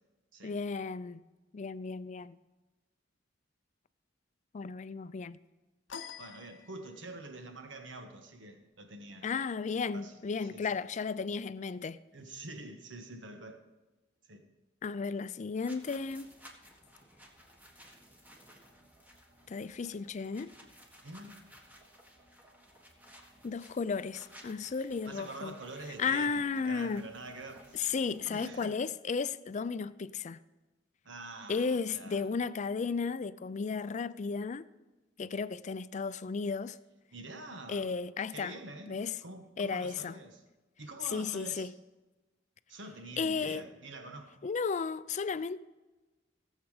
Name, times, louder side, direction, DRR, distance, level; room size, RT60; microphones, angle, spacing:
voice 1, 0.4-1.2 1.5-2.4 4.5-5.4 9.2-12.0 14.8-16.3 19.5-20.5 23.4-25.5 26.0-27.1 27.7-30.4 31.5-34.7 35.2-36.8 37.7-38.5 38.9-39.2 39.6-40.1 41.0-41.7 43.2-43.6 44.4-45.6, left 5 dB, 40° left, 0.4 m, -34 dB
sound 1, 5.9-7.3, left 6 dB, 85° left, 0.7 m, -47 dB
voice 2, 6.2-9.3 9.9-10.7 12.1-13.6 14.3-14.5 21.0-21.4 25.1-27.8 28.3-28.8 31.0-32.3 37.1-37.9 38.3-40.4 40.8-41.7 42.7-44.4, right 2 dB, 80° right, 1.4 m, -46 dB
sound 2, 15.6-28.5, equal, 10° right, 1.6 m, -57 dB
17.0 x 7.3 x 4.9 m
head